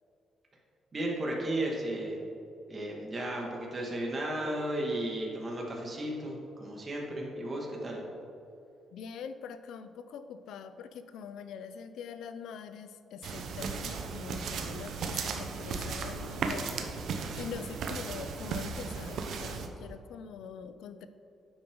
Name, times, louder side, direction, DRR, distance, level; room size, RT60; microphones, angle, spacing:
voice 1, 0.9-2.2 2.7-8.0, right 1 dB, 35° right, -2 dB, 2.1 m, -34 dB
voice 2, 8.9-16.7 17.0-21.1, left 7 dB, 80° left, 11 dB, 0.5 m, -44 dB
sound 1, 13.2-19.7, right 5 dB, 70° right, 0.9 m, -36 dB
9.9 x 7.9 x 3.9 m, 2.6 s
cardioid pair, 90°, 0 cm